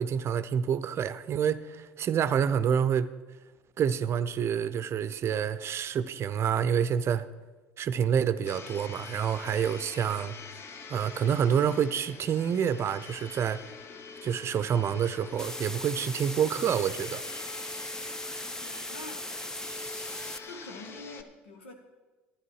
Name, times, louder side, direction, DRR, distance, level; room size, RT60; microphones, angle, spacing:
voice 1, 0.0-3.1 3.8-7.3 7.8-10.3 10.9-13.7 14.2-17.2, right 8 dB, 45° right, 0.6 m, -28 dB
Domestic sounds home sounds, 8.5-21.2, left 4 dB, 40° left, 0.9 m, -45 dB
sound 1, 15.4-20.4, left 1 dB, 10° left, 0.7 m, -38 dB
voice 2, 18.6-19.3 20.4-21.7, left 2 dB, 90° left, 1.7 m, -45 dB
12.5 x 10.5 x 4.8 m
hypercardioid pair, 75°, 6 cm